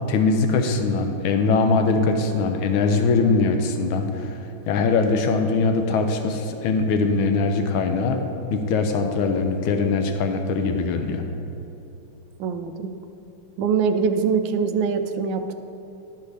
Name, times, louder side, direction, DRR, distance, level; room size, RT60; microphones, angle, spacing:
voice 1, 0.1-4.4 4.7-8.2 8.5-11.2, left 4 dB, 85° left, 6 dB, 1.4 m, -21 dB
voice 2, 12.4-12.9 13.6-15.5, right 5 dB, 75° right, 7 dB, 1.1 m, -23 dB
12.0 x 5.6 x 3.3 m, 2.9 s
omnidirectional pair, 2.2 m